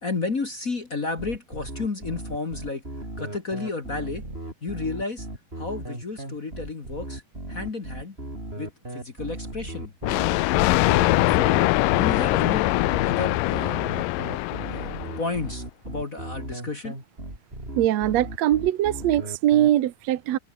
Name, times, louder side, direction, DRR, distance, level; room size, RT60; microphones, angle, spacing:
voice 1, 0.0-2.8 3.2-4.2 4.6-5.3 5.5-7.2 7.5-8.2 8.5-9.9 11.3-11.6 11.9-12.7 13.0-13.8 14.6-16.9, left 3 dB, 35° left, 1.3 m, -32 dB
sound 1, 1.2-19.7, right 1 dB, 15° right, 7.0 m, -36 dB
Thunder, 10.0-15.4, left 19 dB, 85° left, 2.0 m, -22 dB
voice 2, 17.8-20.4, right 13 dB, 70° right, 1.7 m, -22 dB
open air
omnidirectional pair, 4.5 m